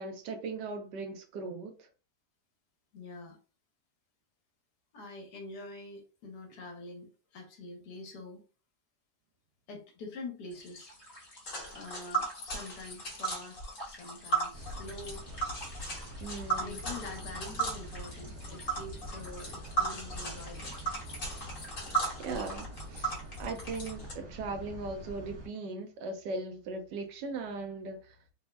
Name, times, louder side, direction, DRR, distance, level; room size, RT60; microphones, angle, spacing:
voice 1, 0.0-1.9 16.2-16.8 22.2-28.2, right 3 dB, 80° right, 1.2 m, -39 dB
voice 2, 2.9-3.4 4.9-8.4 9.7-10.9 11.7-13.6 13.9-15.2 16.6-20.7, left 2 dB, 75° left, 1.3 m, -45 dB
sound 1, 10.5-22.7, equal, 20° left, 0.7 m, -52 dB
Tick, 11.5-24.1, right 4 dB, 40° left, 0.9 m, -36 dB
sound 2, 14.5-25.5, equal, 60° right, 1.3 m, -45 dB
3.4 x 2.0 x 2.2 m
omnidirectional pair, 1.8 m